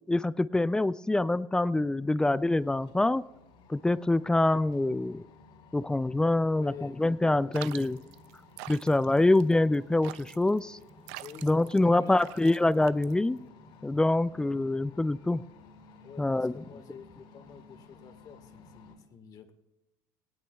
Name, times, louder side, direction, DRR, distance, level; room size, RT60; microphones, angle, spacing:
voice 1, 0.1-3.2 3.7-5.2 5.7-8.0 8.7-10.8 11.4-13.4 13.8-15.4 16.2-16.5, left 2 dB, 10° left, 17 dB, 0.3 m, -25 dB
sound 1, 2.3-18.9, left 3 dB, 65° left, 4.7 m, -55 dB
voice 2, 6.5-7.8 11.2-12.6 16.0-19.5, left 7 dB, 40° left, 7 dB, 1.7 m, -49 dB
sound 2, 7.5-13.5, right 17 dB, 80° right, 0.4 m, -46 dB
18.5 x 18.5 x 2.4 m, 1.0 s
cardioid pair, 130°, 10 cm